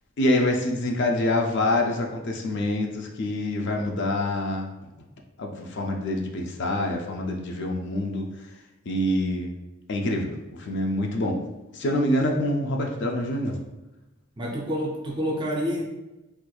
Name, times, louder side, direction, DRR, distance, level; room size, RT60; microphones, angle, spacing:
voice 1, 0.2-4.7 5.4-8.3 8.9-9.5 9.9-10.3 10.6-11.4 11.7-13.6, left 1 dB, 50° left, 2 dB, 0.4 m, -26 dB
voice 2, 14.4-15.8, equal, 20° right, -1 dB, 0.4 m, -28 dB
4.3 x 2.4 x 2.3 m, 1.0 s
head